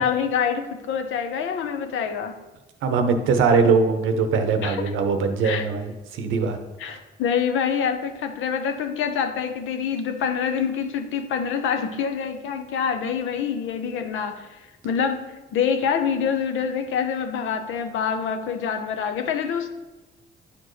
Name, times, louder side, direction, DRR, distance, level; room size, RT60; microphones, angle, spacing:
voice 1, 0.0-2.3 4.6-4.8 5.4-5.7 6.8-14.6 14.8-19.7, left 7 dB, 80° left, 0.8 m, -26 dB
voice 2, 2.8-6.6 6.9-7.0, right 4 dB, 80° right, 0.8 m, -21 dB
9.6 x 4.4 x 3.2 m
cardioid pair, 90°, 20 cm